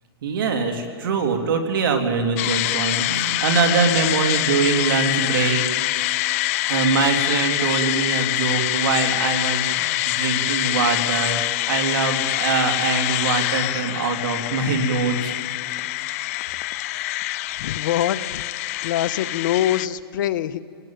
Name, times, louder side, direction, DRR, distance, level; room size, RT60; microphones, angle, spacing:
voice 1, 0.2-5.6 6.7-15.3, right 4 dB, 60° right, 4 dB, 3.1 m, -23 dB
sound 1, 2.4-19.9, left 17 dB, 35° left, 0.5 m, -25 dB
voice 2, 17.6-18.4 18.8-20.6, left 12 dB, 50° left, 12 dB, 0.9 m, -24 dB
27.5 x 19.5 x 9.0 m, 2.2 s
hypercardioid pair, 155°, 13 cm